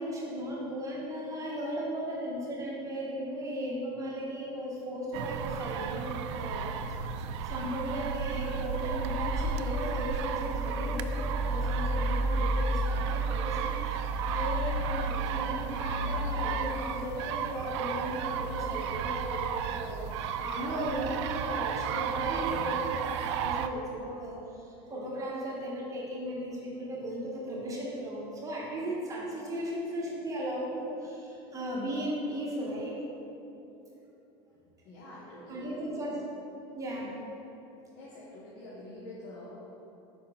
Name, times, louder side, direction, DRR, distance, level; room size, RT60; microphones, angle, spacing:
voice 1, 0.0-7.1 7.4-33.0 35.5-36.1 36.7-37.2, equal, 25° right, -5 dB, 1.3 m, -36 dB
sound 1, 5.1-23.7, right 4 dB, 85° right, 0.4 m, -32 dB
voice 2, 34.8-36.2 38.0-39.6, left 1 dB, 65° left, -7 dB, 1.4 m, -46 dB
5.3 x 4.2 x 5.8 m, 2.9 s
supercardioid pair, 130°, 14 cm